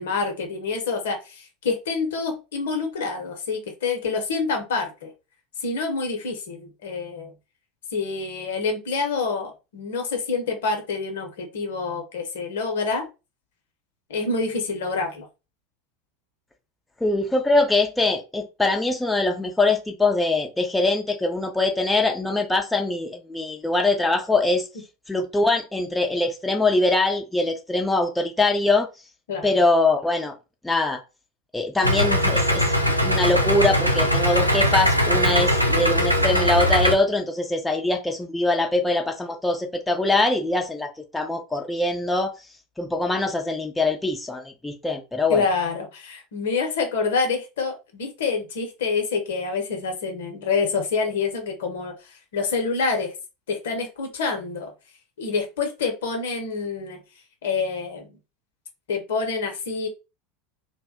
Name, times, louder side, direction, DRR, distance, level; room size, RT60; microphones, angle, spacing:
voice 1, 0.0-5.1 5.6-7.3 7.9-13.1 14.1-15.3 29.3-29.5 45.3-53.1 53.5-54.7 55.2-57.0 57.4-58.2 58.9-59.9, left 4 dB, 65° left, 0.8 m, -27 dB
voice 2, 17.0-24.7 25.1-28.9 29.4-30.3 30.6-31.0 31.5-32.6 33.0-42.4 42.8-45.4, left 2 dB, 5° left, 0.5 m, -23 dB
Idling, 31.8-36.9, equal, 90° right, 0.4 m, -20 dB
2.6 x 2.1 x 3.4 m
figure-of-eight pair, 80°, 0 cm